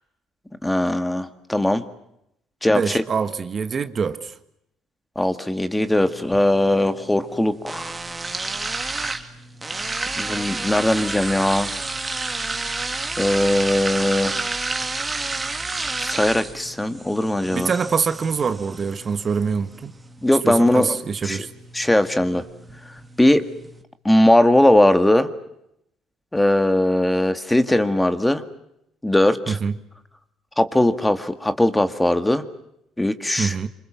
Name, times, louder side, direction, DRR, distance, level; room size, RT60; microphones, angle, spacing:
voice 1, 0.6-1.8 2.6-3.0 5.2-7.9 10.2-11.7 13.2-14.4 16.0-17.7 20.2-21.0 21.2-21.5 21.7-22.4 23.2-23.5 24.1-25.3 26.3-28.4 29.0-29.6 30.6-32.5 33.0-33.6, left 1 dB, 5° left, 1.8 m, -19 dB
voice 2, 2.7-4.3 17.5-19.9 20.4-21.5 29.5-29.7 33.4-33.7, right 5 dB, 35° right, 1.5 m, -24 dB
sound 1, 5.8-23.8, right 3 dB, 15° right, 2.5 m, -31 dB
27.0 x 26.0 x 7.5 m
cardioid pair, 110°, 0 cm